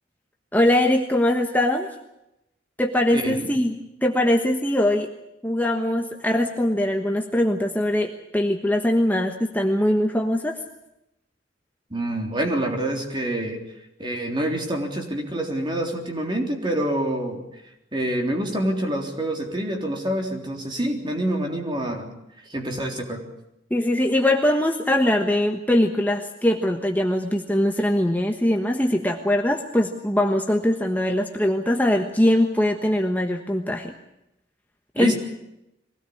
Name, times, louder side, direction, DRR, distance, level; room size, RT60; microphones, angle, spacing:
voice 1, 0.5-1.9 2.8-5.1 5.4-10.6 23.7-33.9 34.9-35.1, left 1 dB, 10° left, 3 dB, 1.3 m, -22 dB
voice 2, 3.1-3.5 11.9-13.6 14.0-17.4 17.9-22.1 22.5-23.2 35.0-35.2, right 1 dB, 25° right, 2 dB, 3.6 m, -26 dB
23.0 x 17.5 x 8.6 m, 0.86 s
head